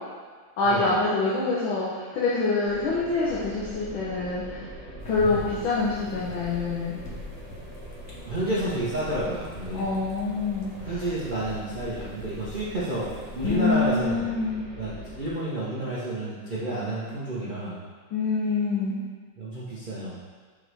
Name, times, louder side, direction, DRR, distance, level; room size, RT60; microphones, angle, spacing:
voice 1, 0.6-4.6 5.0-7.0 9.7-11.0 13.4-14.7 18.1-19.0, left 3 dB, 70° left, -7 dB, 1.6 m, -26 dB
sound 1, 2.6-15.3, equal, 5° left, 0.8 m, -42 dB
sound 2, 5.0-13.6, left 2 dB, 55° left, 0.9 m, -43 dB
voice 2, 8.3-9.9 10.9-14.2 14.8-17.8 19.4-20.1, right 1 dB, 60° right, -9 dB, 0.5 m, -30 dB
6.1 x 5.1 x 3.3 m, 1.5 s
omnidirectional pair, 2.4 m